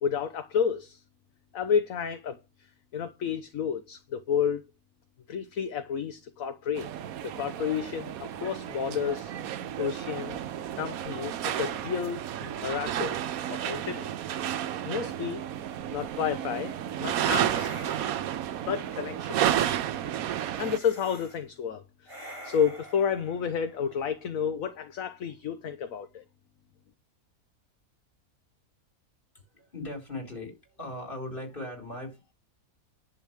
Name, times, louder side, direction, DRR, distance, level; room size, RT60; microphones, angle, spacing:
voice 1, 0.0-1.0 1.5-2.4 2.9-4.6 5.3-6.9 7.2-9.3 9.8-10.4 10.7-13.2 13.5-14.1 14.8-15.4 15.9-17.7 18.7-19.4 20.6-26.2, left 7 dB, 65° left, 1.3 m, -31 dB
sound 1, 6.8-20.8, right 10 dB, 70° right, 1.1 m, -32 dB
sound 2, 17.4-18.6 20.5-21.4 22.1-24.3, equal, 20° right, 3.9 m, -46 dB
voice 2, 29.3-32.3, left 1 dB, 35° left, 4.5 m, -39 dB
10.5 x 4.6 x 7.4 m
omnidirectional pair, 1.6 m